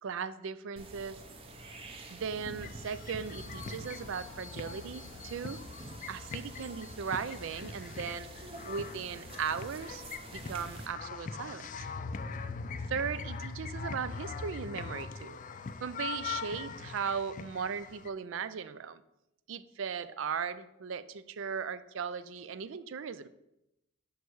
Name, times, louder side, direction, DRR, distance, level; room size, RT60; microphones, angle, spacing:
voice 1, 0.0-1.2 2.1-5.6 6.1-8.3 8.6-10.0 10.3-11.9 12.9-15.4 15.8-19.0 19.5-23.3, right 6 dB, 65° right, 14 dB, 0.4 m, -37 dB
sound 1, 0.8-10.9, right 2 dB, 25° right, 0.6 m, -47 dB
sound 2, 2.6-18.1, left 5 dB, 40° left, 0.3 m, -42 dB
6.5 x 5.3 x 4.6 m, 0.87 s
head